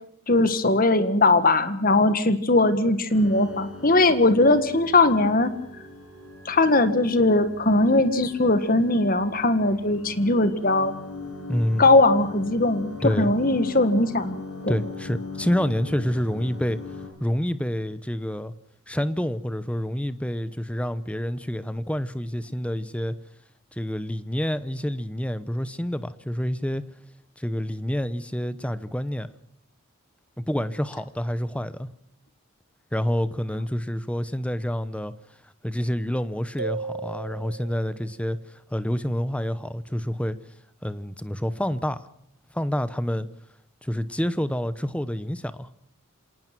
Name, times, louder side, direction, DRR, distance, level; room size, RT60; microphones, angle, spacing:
voice 1, 0.3-5.5 6.4-10.9 11.8-14.3 14.6-14.8, left 2 dB, 40° left, 1.6 m, -20 dB
sound 1, 3.1-17.1, left 2 dB, 75° left, 7.4 m, -40 dB
voice 2, 11.5-11.9 13.0-13.3 14.7-16.8 17.2-18.5 18.9-23.1 23.7-26.8 27.4-29.3 30.5-31.9 32.9-35.1 35.6-40.4 40.8-42.1 42.5-43.3 43.8-45.7, equal, 5° left, 0.8 m, -28 dB
sound 2, 36.6-38.1, right 4 dB, 85° right, 1.8 m, -34 dB
27.0 x 18.5 x 6.1 m
head